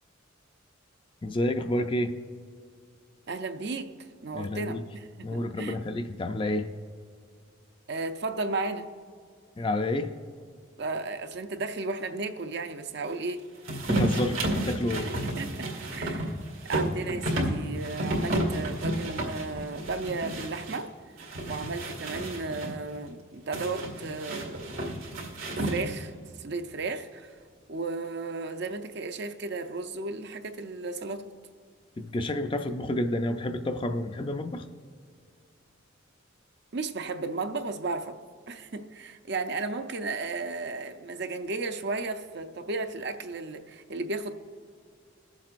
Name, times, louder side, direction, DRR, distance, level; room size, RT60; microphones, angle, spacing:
voice 1, 1.2-2.1 4.3-4.8 5.2-6.7 9.6-10.1 13.9-14.4 14.6-15.1 32.0-34.6, left 1 dB, 25° left, 7 dB, 0.4 m, -29 dB
voice 2, 3.3-3.9 4.2-5.8 7.9-8.9 10.8-13.5 15.0-16.4 16.7-20.9 21.5-24.6 25.1-25.3 25.6-26.1 26.4-27.4 27.7-31.3 36.7-38.2 38.5-44.3, right 3 dB, 55° right, 7 dB, 0.6 m, -34 dB
sound 1, 13.6-20.8 21.2-22.7 23.5-26.1, right 1 dB, 85° right, 2.0 m, -31 dB
21.5 x 7.3 x 2.5 m, 2.1 s
head